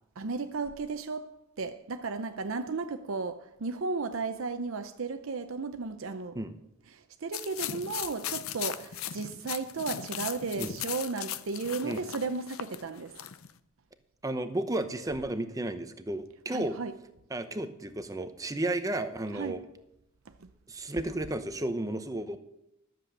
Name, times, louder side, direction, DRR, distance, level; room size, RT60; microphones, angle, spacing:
voice 1, 0.2-1.3 1.6-6.4 6.9-13.2 16.5-16.9 19.3-19.7 20.3-20.5, right 4 dB, 70° right, 0.6 m, -34 dB
sound 1, 7.3-13.5, left 10 dB, 75° left, 0.6 m, -38 dB
voice 2, 14.2-16.8 17.3-19.6 20.7-22.4, right 1 dB, 15° right, 0.8 m, -33 dB
12.5 x 7.6 x 6.5 m
head